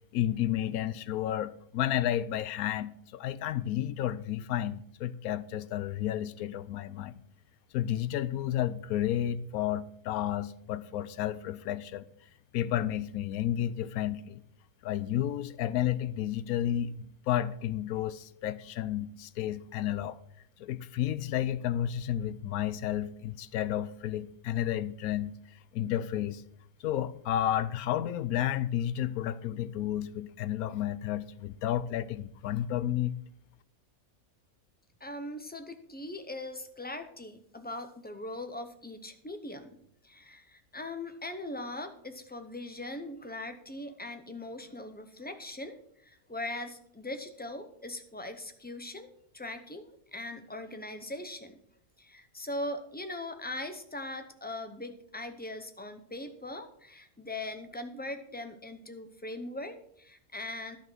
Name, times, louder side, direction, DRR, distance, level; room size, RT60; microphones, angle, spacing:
voice 1, 0.1-7.2 7.7-12.1 12.5-14.4 14.8-20.2 20.6-26.4 26.8-33.1, left 11 dB, 85° left, 1.1 m, -31 dB
voice 2, 35.0-39.8 40.0-51.6 52.0-60.8, left 1 dB, 10° left, 0.5 m, -40 dB
11.0 x 5.9 x 6.0 m
omnidirectional pair, 1.5 m